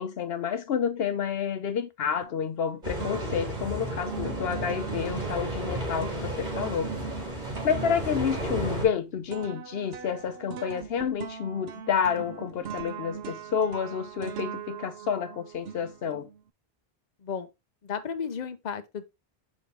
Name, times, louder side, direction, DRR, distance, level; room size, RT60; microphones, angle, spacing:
voice 1, 0.0-6.9 7.6-16.3, left 7 dB, 75° left, 0.9 m, -29 dB
sound 1, 2.2-2.7 3.0-16.4, right 7 dB, 80° right, 0.9 m, -41 dB
sound 2, 2.8-8.8, right 1 dB, 50° right, 3.4 m, -33 dB
voice 2, 17.8-19.0, left 7 dB, 45° left, 0.9 m, -33 dB
7.4 x 5.2 x 3.3 m
omnidirectional pair, 1.0 m